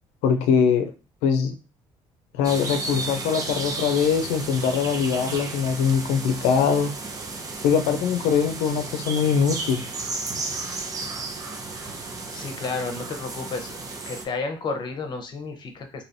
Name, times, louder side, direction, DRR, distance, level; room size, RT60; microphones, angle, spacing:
voice 1, 0.2-0.8 1.2-1.5 2.3-6.9 7.6-9.8, left 7 dB, 90° left, 8 dB, 0.5 m, -22 dB
sound 1, 2.4-14.2, right 3 dB, 35° right, 0.8 m, -33 dB
voice 2, 12.3-13.8 14.1-16.0, left 4 dB, 45° left, 6 dB, 0.8 m, -31 dB
3.2 x 2.8 x 2.7 m, 0.32 s
cardioid pair, 95°, 11 cm